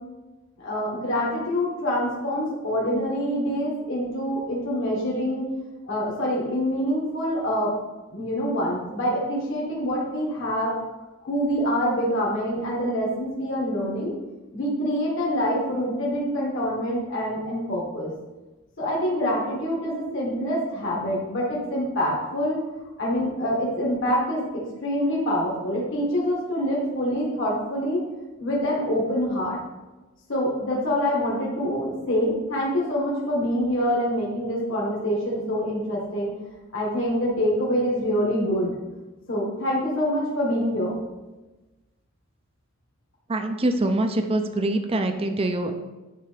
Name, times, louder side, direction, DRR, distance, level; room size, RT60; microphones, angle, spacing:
voice 1, 0.6-5.5 5.9-7.7 8.1-10.7 11.2-14.1 14.5-18.1 18.8-22.6 23.0-24.5 24.8-28.0 28.4-29.6 30.3-36.3 36.7-38.8 39.3-40.9, equal, 65° left, -5 dB, 1.7 m, -25 dB
voice 2, 43.3-45.7, right 1 dB, 30° right, 7 dB, 0.5 m, -24 dB
9.9 x 3.4 x 3.3 m, 1.1 s
head